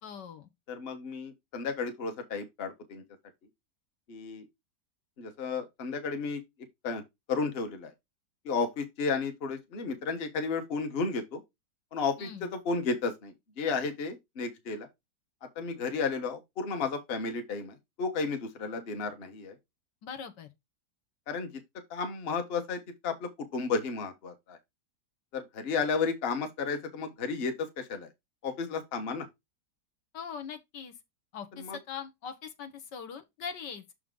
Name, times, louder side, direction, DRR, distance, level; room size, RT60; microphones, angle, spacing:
voice 1, 0.0-0.5 12.2-12.5 20.0-20.5 30.1-30.9 31.3-33.9, left 7 dB, 75° left, 1.6 m, -41 dB
voice 2, 0.7-3.0 4.1-4.5 5.2-6.4 6.8-7.0 7.3-7.9 8.4-11.4 11.9-14.9 15.6-19.5 21.3-21.5 21.9-24.6 25.3-28.1 28.4-29.3 31.6-31.8, left 4 dB, 40° left, 1.2 m, -33 dB
6.3 x 4.9 x 3.7 m
omnidirectional pair, 1.9 m